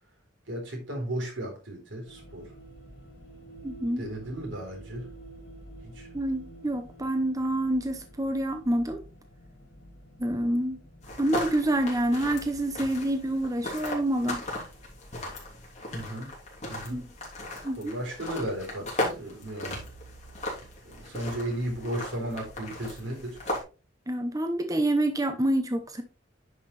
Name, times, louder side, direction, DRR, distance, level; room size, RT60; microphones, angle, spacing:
voice 1, 0.5-2.5 4.0-5.1 5.8-6.1 15.9-16.3 16.7-17.0 17.8-19.8 20.8-23.4, right 1 dB, 85° right, 3.9 m, -35 dB
sound 1, 2.1-15.0, right 1 dB, 70° left, 2.8 m, -50 dB
voice 2, 3.6-4.0 6.1-9.0 10.2-10.8 11.2-14.4 16.9-17.1 17.6-17.9 24.1-26.0, right 1 dB, 20° right, 0.8 m, -27 dB
sound 2, 11.0-23.6, left 1 dB, 40° left, 3.1 m, -37 dB
9.8 x 5.8 x 3.3 m
head